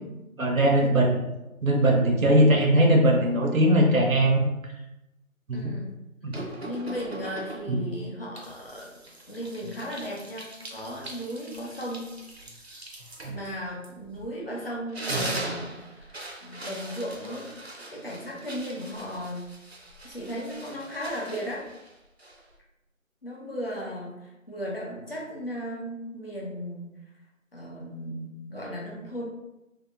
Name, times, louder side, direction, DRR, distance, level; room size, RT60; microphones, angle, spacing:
voice 1, 0.4-1.1 1.6-4.5 5.5-5.7 6.2-6.4 7.7-7.8, right 1 dB, 90° right, 1 dB, 0.8 m, -20 dB
voice 2, 5.5-5.9 6.6-9.0 9.2-12.1 13.3-16.1 16.4-17.5 17.8-19.5 20.0-21.7 23.2-26.9 27.5-29.2, equal, 45° left, -3 dB, 0.7 m, -36 dB
sound 1, 6.3-7.9 8.4-14.4 14.7-22.6, right 2 dB, 55° right, 0.5 m, -40 dB
2.7 x 2.0 x 2.6 m, 0.94 s
figure-of-eight pair, 170°, 40 cm